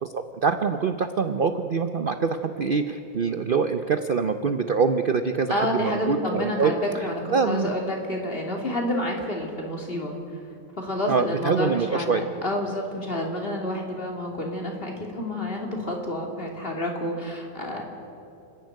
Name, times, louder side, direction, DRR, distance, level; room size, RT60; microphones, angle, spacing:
voice 1, 0.0-7.7 11.1-12.2, right 5 dB, 65° right, 8 dB, 0.5 m, -25 dB
voice 2, 5.5-10.2 10.8-17.8, left 1 dB, 30° left, 1 dB, 3.0 m, -29 dB
29.5 x 11.0 x 9.4 m, 2.7 s
omnidirectional pair, 1.9 m